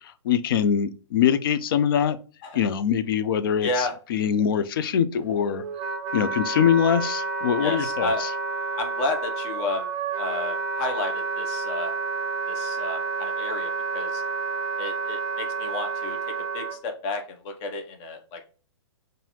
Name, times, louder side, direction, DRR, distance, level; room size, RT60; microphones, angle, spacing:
voice 1, 0.2-2.2 2.5-5.6 6.1-8.3, left 8 dB, 50° left, 0.5 m, -23 dB
voice 2, 3.6-4.0 7.6-8.3 8.8-9.9 10.2-11.9 12.5-14.2 14.8-18.4, left 3 dB, 30° left, 0.8 m, -31 dB
Wind instrument woodwind instrument, 5.2-16.8, right 4 dB, 30° right, 0.5 m, -30 dB
5.5 x 2.6 x 2.8 m
figure-of-eight pair, 120°, 15 cm